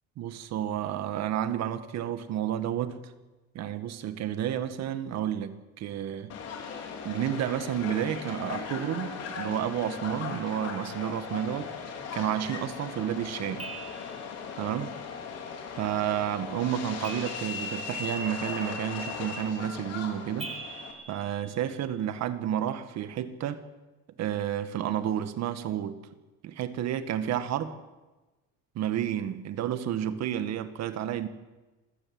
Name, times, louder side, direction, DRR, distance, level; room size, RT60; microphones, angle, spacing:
voice 1, 0.2-3.1 3.5-6.3 7.0-11.7 12.1-13.7 14.6-15.0 15.8-20.5 21.1-23.6 24.2-26.0 26.4-27.7 28.8-31.3, right 10 dB, 60° right, 2.0 m, -31 dB
Subway metro underground, 6.3-20.9, left 5 dB, 55° left, 4.8 m, -38 dB
sound 1, 13.6-14.4 17.0-18.1 20.4-22.1, right 4 dB, 20° right, 2.8 m, -43 dB
27.0 x 15.5 x 8.0 m
cardioid pair, 130°, 30 cm